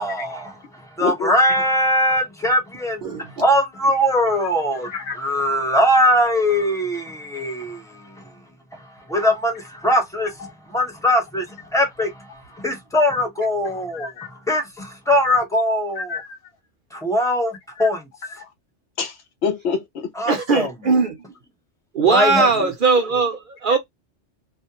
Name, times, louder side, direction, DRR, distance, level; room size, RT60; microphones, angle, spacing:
voice 1, 0.0-16.2 16.9-18.1 20.1-20.9 22.0-22.5, equal, 5° left, 0.8 m, -21 dB
voice 2, 1.0-1.3 4.8-5.2 13.9-14.3 16.0-16.4 17.8-17.9 18.4-18.5 19.0-20.1 22.6-22.7, left 5 dB, 70° left, 0.8 m, -27 dB
voice 3, 20.3-21.2 21.9-23.8, right 4 dB, 55° right, 0.7 m, -19 dB
2.4 x 2.1 x 2.8 m
omnidirectional pair, 1.2 m